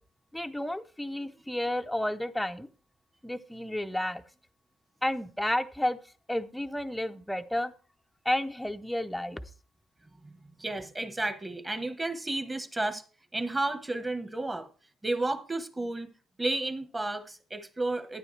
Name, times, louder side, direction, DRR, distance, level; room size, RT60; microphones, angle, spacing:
voice 1, 0.3-2.7 3.2-4.2 5.0-6.0 6.3-7.7 8.2-9.4, left 1 dB, 5° left, 0.7 m, -31 dB
voice 2, 10.6-13.0 13.3-14.7 15.0-16.1 16.4-18.2, right 2 dB, 15° right, 1.2 m, -32 dB
12.0 x 9.9 x 3.3 m
cardioid pair, 120°, 0 cm